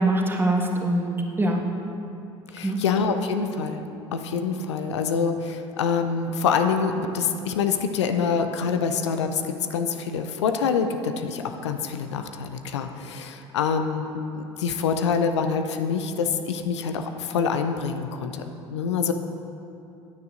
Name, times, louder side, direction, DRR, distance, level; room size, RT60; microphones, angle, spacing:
voice 1, 0.0-1.6 2.6-2.8, right 1 dB, 15° right, 1 dB, 1.5 m, -23 dB
voice 2, 2.5-3.8 4.1-18.4 18.7-19.1, left 6 dB, 75° left, 7 dB, 0.5 m, -26 dB
16.0 x 9.4 x 2.6 m, 2.7 s
figure-of-eight pair, 60°, 15 cm